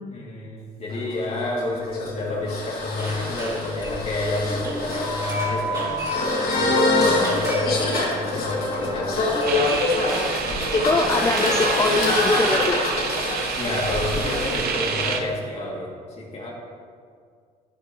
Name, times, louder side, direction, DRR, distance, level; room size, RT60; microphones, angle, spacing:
voice 1, 0.0-6.0 6.5-9.7 13.5-16.5, left 2 dB, 40° left, -2 dB, 2.7 m, -29 dB
sound 1, 0.9-14.6, left 2 dB, 60° left, 2.9 m, -25 dB
sound 2, 3.0-12.8, right 1 dB, 20° right, 3.0 m, -38 dB
sound 3, 9.5-15.2, right 6 dB, 65° right, 1.0 m, -28 dB
voice 2, 10.7-12.9, left 3 dB, 20° left, 3 dB, 0.6 m, -23 dB
12.5 x 10.0 x 3.1 m, 2.1 s
cardioid pair, 110°, 17 cm